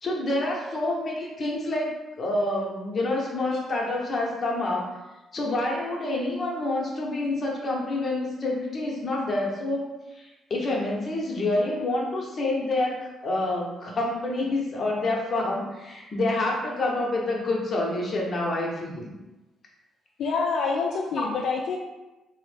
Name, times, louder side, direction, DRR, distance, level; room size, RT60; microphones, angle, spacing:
voice 1, 0.0-5.0 5.3-9.8 10.1-19.1 21.2-21.3, left 2 dB, 40° left, -2 dB, 0.8 m, -27 dB
voice 2, 20.2-21.8, left 4 dB, 70° left, -1 dB, 0.3 m, -26 dB
3.2 x 2.1 x 3.2 m, 1.1 s
cardioid pair, 90°, 0 cm